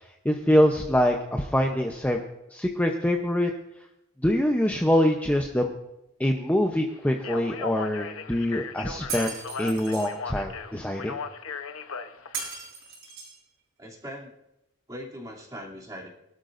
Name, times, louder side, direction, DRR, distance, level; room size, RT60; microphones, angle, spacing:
voice 1, 0.2-2.2 2.5-3.5 4.2-5.7 6.2-11.1, equal, 10° left, 2 dB, 0.7 m, -24 dB
Speech, 7.1-12.5, left 5 dB, 90° left, 0.9 m, -37 dB
Shatter, 9.1-10.1 12.3-13.4, right 4 dB, 85° right, 6.3 m, -36 dB
voice 2, 13.8-14.3 14.9-16.1, equal, 20° right, -4 dB, 2.8 m, -40 dB
23.5 x 12.5 x 2.6 m, 0.86 s
head